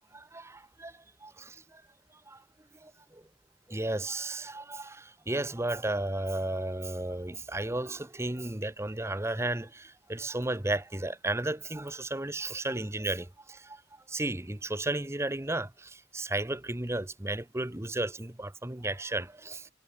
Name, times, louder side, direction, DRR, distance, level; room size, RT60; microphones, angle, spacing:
voice 1, 0.1-1.8 2.3-2.4 2.8-3.2 3.7-13.8 14.1-19.7, right 2 dB, 15° right, 1.0 m, -34 dB
head